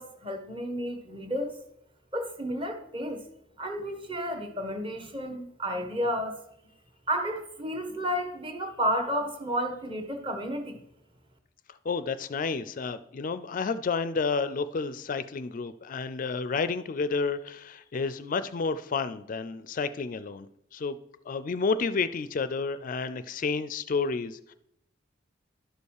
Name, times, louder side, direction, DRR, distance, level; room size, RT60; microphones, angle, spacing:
voice 1, 0.0-1.6 2.1-3.2 3.6-6.4 7.1-10.8, equal, 30° right, 6 dB, 1.4 m, -32 dB
voice 2, 11.8-20.5 20.7-21.0 21.3-24.5, left 4 dB, 45° left, 14 dB, 0.4 m, -30 dB
11.5 x 5.4 x 6.5 m, 0.76 s
head